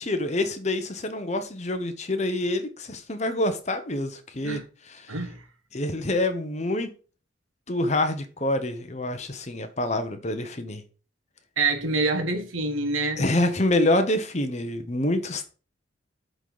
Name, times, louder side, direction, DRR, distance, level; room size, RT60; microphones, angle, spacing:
voice 1, 0.1-4.6 4.9-5.2 5.7-6.9 7.7-10.8 13.2-15.5, left 1 dB, 35° left, 0.9 m, -26 dB
voice 2, 5.1-5.4 11.6-13.2, right 3 dB, 90° right, 1.6 m, -26 dB
8.0 x 4.0 x 5.9 m
head